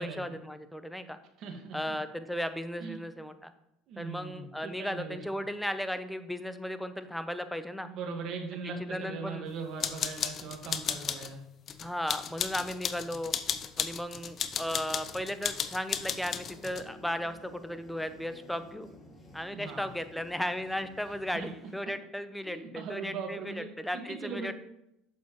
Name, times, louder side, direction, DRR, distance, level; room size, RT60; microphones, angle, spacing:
voice 1, 0.0-1.2 1.7-3.5 4.0-7.9 8.6-9.5 11.8-13.3 13.8-18.9 19.3-24.5, equal, 5° left, 11 dB, 0.7 m, -36 dB
voice 2, 1.4-2.0 2.8-3.0 3.9-5.2 7.9-11.4 19.5-19.9 21.3-21.5 22.4-23.7 23.9-24.5, right 5 dB, 55° right, 3 dB, 1.7 m, -39 dB
sound 1, 9.8-11.3 11.7-16.8, left 8 dB, 45° left, 0.7 m, -34 dB
sound 2, 16.2-21.7, left 1 dB, 20° left, 2.3 m, -53 dB
8.2 x 7.1 x 3.2 m, 0.80 s
supercardioid pair, 90°, 0 cm